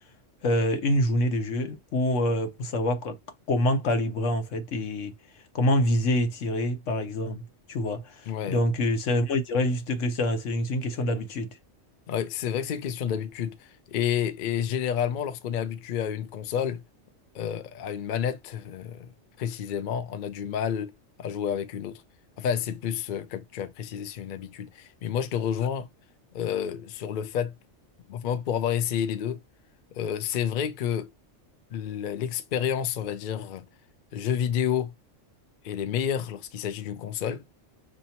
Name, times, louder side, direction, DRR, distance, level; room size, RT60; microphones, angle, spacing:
voice 1, 0.4-3.2 3.5-5.1 5.5-7.4 7.7-11.5, left 1 dB, 85° left, 1.2 m, -26 dB
voice 2, 8.3-8.6 12.1-16.8 17.3-19.1 19.4-20.9 21.2-22.0 22.4-25.9 26.3-27.5 28.1-29.4 29.9-31.1 31.7-33.6 34.1-34.9 35.6-37.4, left 8 dB, 55° left, 0.6 m, -30 dB
6.5 x 2.8 x 2.8 m
omnidirectional pair, 1.3 m